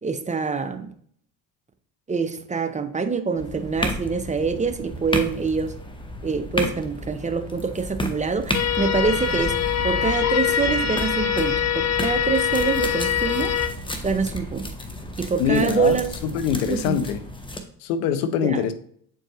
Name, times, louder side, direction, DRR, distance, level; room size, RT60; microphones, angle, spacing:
voice 1, 0.0-0.9 2.1-5.7 6.2-9.5 9.8-13.5 14.0-14.7 15.2-16.1 16.6-17.0 18.4-18.6, right 5 dB, 15° right, 8 dB, 0.7 m, -25 dB
sound 1, 3.4-17.6, equal, 10° left, 0.9 m, -33 dB
sound 2, 8.5-13.7, left 8 dB, 35° left, 0.7 m, -23 dB
voice 2, 15.4-17.2 17.8-18.7, left 8 dB, 75° left, 11 dB, 0.8 m, -23 dB
7.7 x 4.5 x 3.0 m, 0.62 s
hypercardioid pair, 65°, 48 cm